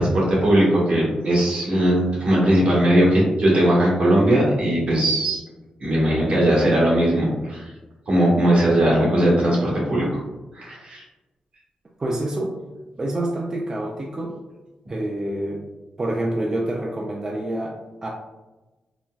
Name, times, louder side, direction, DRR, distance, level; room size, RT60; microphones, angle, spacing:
voice 1, 0.0-5.4 5.8-7.7 8.1-10.2 10.5-11.0, right 1 dB, 65° right, -5 dB, 1.3 m, -19 dB
voice 2, 12.0-12.6 13.0-14.4 14.9-15.6 16.0-18.1, right 1 dB, 30° right, -1 dB, 0.3 m, -27 dB
3.9 x 2.1 x 2.3 m, 1.1 s
cardioid pair, 95°, 2 cm